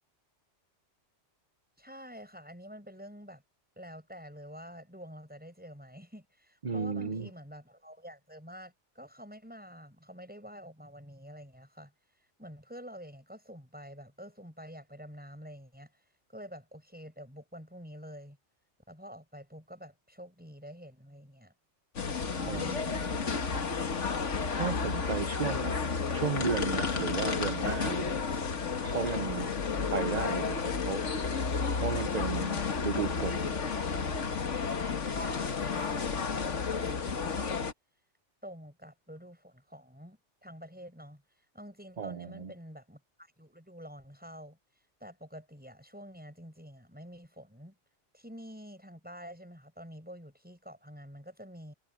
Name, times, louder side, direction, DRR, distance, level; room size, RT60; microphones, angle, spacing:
voice 1, 1.8-3.4 3.8-11.9 12.4-15.9 16.3-18.4 18.9-21.5 22.2-22.8 35.1-37.7 38.4-41.2 41.5-44.6 45.0-47.8 48.1-51.7, equal, 5° right, 7.2 m, -48 dB
voice 2, 6.6-7.3 22.4-23.6 24.5-25.8 26.1-28.2 28.8-29.5 29.9-31.0 31.7-33.6 42.0-42.5, right 5 dB, 35° right, 1.0 m, -34 dB
sound 1, 22.0-37.7, left 5 dB, 75° left, 1.8 m, -32 dB
omnidirectional pair, 1.2 m